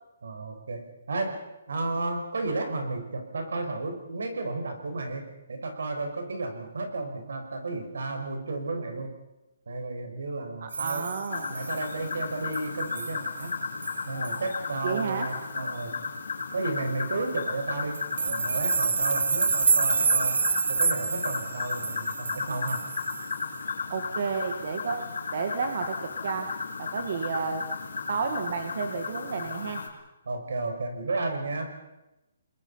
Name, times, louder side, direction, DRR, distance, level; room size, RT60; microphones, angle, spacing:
voice 1, 0.2-1.4 1.7-9.1 9.7-11.0 11.5-13.6 14.1-15.9 16.5-20.4 20.7-22.8 30.3-31.7, right 3 dB, 75° right, 5 dB, 5.5 m, -33 dB
voice 2, 10.6-11.5 14.8-15.3 23.9-25.0 25.3-26.5 26.8-27.6 28.1-29.8, right 5 dB, 40° right, 6 dB, 1.7 m, -31 dB
sound 1, 10.7-11.9 12.5-12.7 12.9-13.1 13.4-13.5 13.8-14.0 14.2-14.4 17.9-23.4, right 5 dB, 90° right, 1.3 m, -28 dB
sound 2, 11.3-29.9, left 4 dB, 80° left, 4.3 m, -34 dB
30.0 x 21.0 x 5.7 m, 0.96 s
hypercardioid pair, 180°, 0 cm